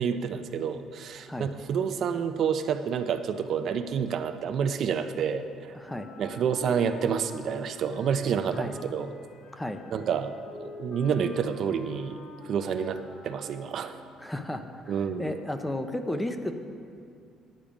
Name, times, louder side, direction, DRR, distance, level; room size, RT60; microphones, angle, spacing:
voice 1, 0.0-5.8 6.2-9.1 9.9-10.3 10.6-12.2 12.4-14.0 14.9-15.3, right 7 dB, 45° right, 9 dB, 0.5 m, -29 dB
voice 2, 1.2-1.5 5.7-6.1 8.5-8.9 9.5-9.8 14.2-16.5, left 1 dB, 5° left, 7 dB, 0.5 m, -34 dB
Wind instrument woodwind instrument, 5.8-14.1, left 3 dB, 90° left, 1.5 m, -46 dB
10.5 x 8.7 x 5.0 m, 2.5 s
cardioid pair, 160°, 0 cm